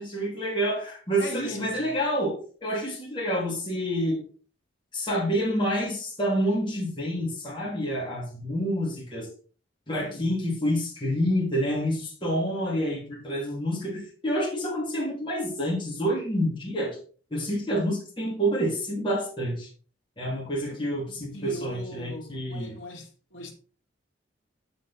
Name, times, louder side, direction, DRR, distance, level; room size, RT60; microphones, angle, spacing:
voice 1, 0.0-4.2 4.9-9.3 9.9-17.0 17.3-19.7 20.2-22.8, equal, 25° left, 2.5 m, -28 dB
voice 2, 1.2-1.9 10.0-10.3 20.7-20.8 21.0-23.5, equal, 80° left, 2.1 m, -39 dB
7.4 x 6.0 x 4.1 m
head